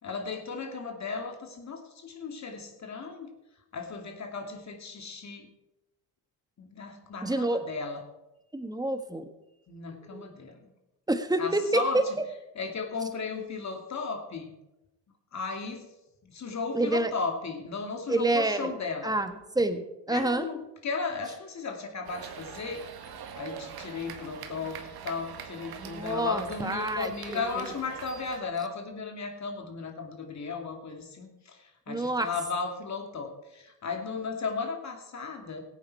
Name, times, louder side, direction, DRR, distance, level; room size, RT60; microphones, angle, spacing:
voice 1, 0.0-3.3 3.7-5.5 6.6-8.0 9.7-10.7 11.4-12.2 12.5-14.5 15.3-15.9 16.2-19.1 20.1-22.8 23.4-35.6, left 4 dB, 40° left, 4 dB, 2.6 m, -35 dB
voice 2, 7.2-7.6 8.5-9.3 10.1-10.3 11.1-12.0 16.7-17.1 18.1-18.7 19.0-20.5 25.8-27.7 31.9-32.3, right 2 dB, 10° right, 8 dB, 1.4 m, -28 dB
sound 1, 22.0-28.4, right 7 dB, 55° right, 1.9 m, -43 dB
17.0 x 8.9 x 4.7 m, 0.95 s
supercardioid pair, 75°, 43 cm